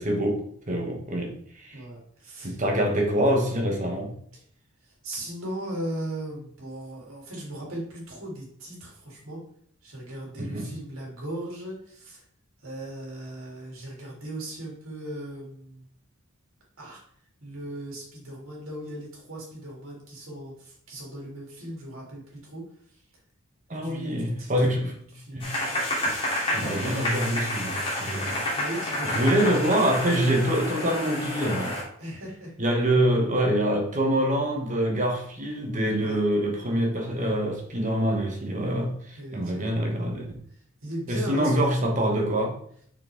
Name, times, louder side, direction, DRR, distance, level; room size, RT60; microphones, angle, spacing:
voice 1, 0.0-1.8 2.4-4.2 10.4-10.7 23.7-25.0 25.3-25.6 26.0-26.2 26.5-28.4 29.0-31.8 32.6-40.4 41.1-42.6, right 1 dB, 35° right, 1 dB, 1.4 m, -25 dB
voice 2, 1.7-2.6 4.8-9.4 9.8-12.2 12.6-15.8 16.8-17.0 17.4-22.6 22.9-23.0 23.8-24.8 25.1-25.4 28.5-29.5 32.0-32.5 36.0-36.2 39.2-39.8 40.5-41.6, right 1 dB, 70° right, -3 dB, 3.2 m, -38 dB
sound 1, 25.4-31.8, left 1 dB, 25° left, 3.1 m, -29 dB
6.7 x 6.4 x 3.6 m, 0.63 s
head